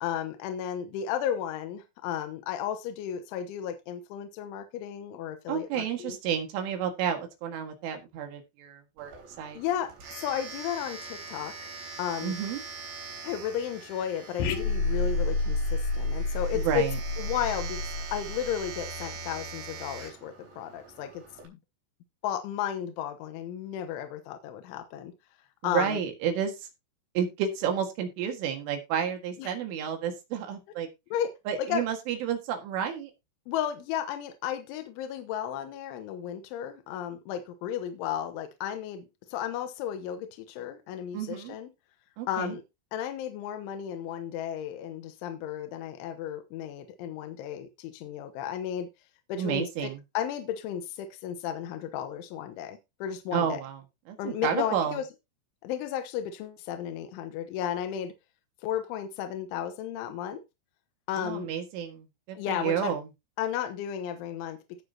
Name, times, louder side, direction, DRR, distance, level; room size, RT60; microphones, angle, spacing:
voice 1, 0.0-6.2 9.5-11.7 12.0-12.4 13.2-16.9 17.2-21.6 22.2-25.1 25.6-26.0 29.4-29.5 31.1-31.8 33.5-41.7 42.3-42.6 42.9-48.9 49.3-53.6 54.2-55.0 55.6-58.1 58.6-60.4 61.1-61.5 62.3-62.9 63.4-64.8, left 9 dB, 85° left, 3.4 m, -34 dB
voice 2, 5.5-9.1 9.4-9.6 12.2-12.6 16.5-17.0 25.6-26.7 27.2-30.9 31.5-33.1 41.1-41.5 42.2-42.6 49.4-50.0 53.3-53.8 54.1-55.0 61.2-63.0, right 8 dB, 80° right, 4.3 m, -31 dB
Domestic sounds home sounds, 9.0-21.5, right 4 dB, 60° right, 5.6 m, -43 dB
sound 1, 14.4-19.0, left 2 dB, 65° left, 2.6 m, -30 dB
17.5 x 6.7 x 2.8 m
omnidirectional pair, 5.5 m